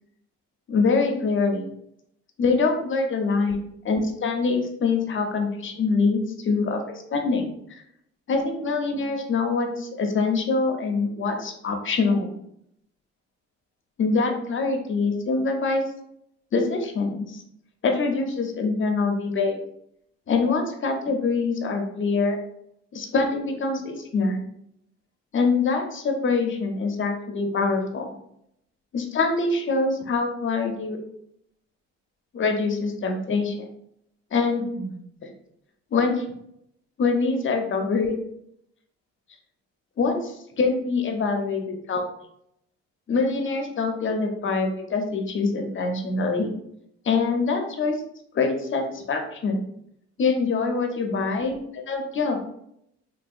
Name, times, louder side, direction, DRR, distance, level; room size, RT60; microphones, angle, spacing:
voice 1, 0.7-1.7 2.4-3.6 3.8-7.5 8.3-12.3 14.0-15.8 16.5-17.4 17.8-19.6 20.3-22.4 22.9-24.4 25.3-28.1 28.9-31.0 32.3-33.6 34.3-34.9 35.2-35.3 35.9-36.2 37.0-38.1 40.0-42.0 43.1-46.5 47.0-48.0 48.3-49.6 50.2-52.4, left 4 dB, 40° left, 3 dB, 0.7 m, -24 dB
3.2 x 2.7 x 2.4 m, 0.75 s
cardioid pair, 90°, 30 cm